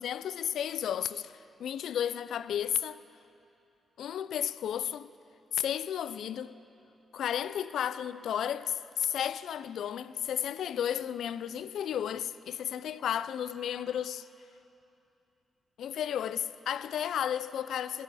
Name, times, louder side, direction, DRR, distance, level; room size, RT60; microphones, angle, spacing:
voice 1, 0.0-3.0 4.0-5.1 5.5-6.5 7.1-14.3 15.8-18.0, left 9 dB, 85° left, 0.4 m, -33 dB
20.0 x 17.0 x 4.1 m
wide cardioid pair, 140°, 0 cm